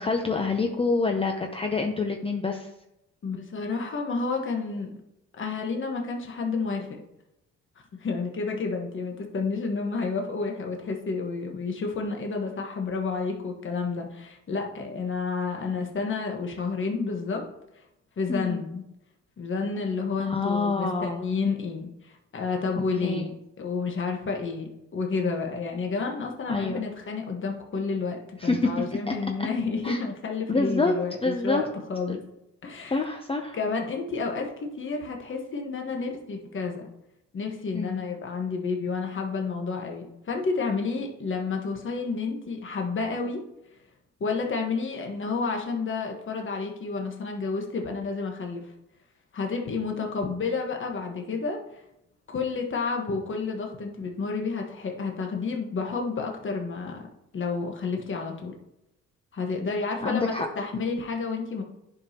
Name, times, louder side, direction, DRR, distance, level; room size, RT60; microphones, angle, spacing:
voice 1, 0.0-2.7 18.3-18.6 20.3-21.2 23.0-23.2 26.5-26.8 28.4-29.1 29.8-30.0 30.5-30.9 31.2-31.6 32.1-32.2 32.9-33.6 37.7-38.0 60.0-60.5, left 3 dB, 20° left, 3 dB, 0.7 m, -27 dB
voice 2, 3.2-4.9 5.4-7.0 8.0-17.4 18.2-18.8 19.4-32.2 32.6-33.0 33.5-36.9 37.3-43.4 44.2-48.7 49.3-51.6 52.3-57.0 57.3-58.5 59.3-61.6, left 4 dB, 40° left, 2 dB, 1.3 m, -30 dB
10.5 x 5.1 x 2.9 m, 0.86 s
cardioid pair, 90°, 30 cm